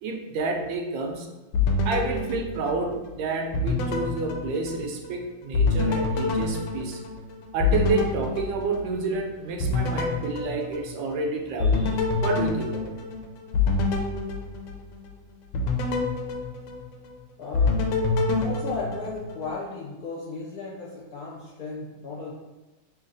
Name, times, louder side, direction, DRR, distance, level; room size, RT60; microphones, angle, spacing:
voice 1, 0.0-1.3 1.8-7.0 7.5-12.9, right 3 dB, 85° right, 3 dB, 1.3 m, -29 dB
sound 1, 1.5-3.1 3.5-5.2 5.5-9.2 9.6-11.2 11.6-15.1 15.5-17.2 17.5-19.5, left 3 dB, 90° left, 1.3 m, -26 dB
voice 2, 17.4-17.8 18.3-22.3, left 3 dB, 60° left, -7 dB, 1.1 m, -35 dB
3.2 x 2.8 x 3.8 m, 1.1 s
omnidirectional pair, 2.0 m